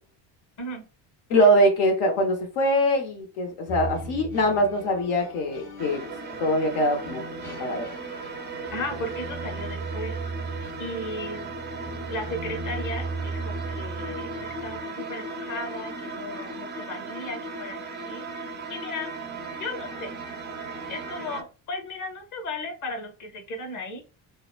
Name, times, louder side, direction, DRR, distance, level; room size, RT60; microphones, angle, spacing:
voice 1, 1.3-6.0 6.4-7.9, equal, 80° left, 0.8 m, -23 dB
sound 1, 3.7-14.8, right 3 dB, 60° left, 1.4 m, -37 dB
sound 2, 5.8-21.4, right 3 dB, 25° right, 0.4 m, -36 dB
voice 2, 8.7-10.2 10.8-11.5 12.1-19.1 19.6-20.1 20.9-24.0, left 2 dB, 40° left, 1.0 m, -36 dB
2.8 x 2.1 x 2.3 m
supercardioid pair, 85°, 48 cm